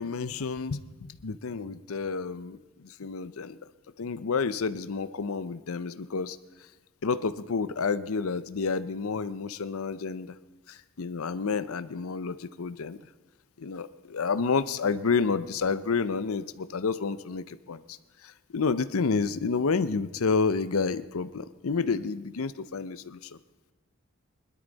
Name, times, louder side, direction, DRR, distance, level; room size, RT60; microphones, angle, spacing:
voice 1, 0.0-3.6 4.0-6.4 7.0-10.3 10.7-13.0 13.6-18.0 18.2-23.3, left 4 dB, 75° left, 14 dB, 0.6 m, -30 dB
20.5 x 12.5 x 4.0 m, 1.2 s
head